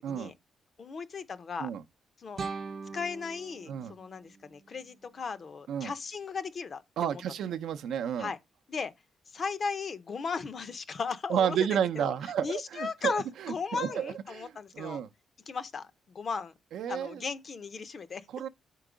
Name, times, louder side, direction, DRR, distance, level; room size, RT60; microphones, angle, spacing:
voice 1, 0.8-1.7 2.2-2.4 2.9-7.2 8.2-8.4 8.7-8.9 9.3-12.1 12.4-15.0 15.5-15.9 16.1-16.5 16.9-18.2, left 5 dB, 40° left, 0.6 m, -36 dB
sound 1, 2.4-5.4, right 4 dB, 35° right, 0.6 m, -42 dB
voice 2, 7.0-8.3 11.3-13.1 13.4-15.1 16.7-17.2 18.3-18.5, right 9 dB, 75° right, 0.5 m, -31 dB
4.6 x 4.5 x 5.0 m
cardioid pair, 150°, 0 cm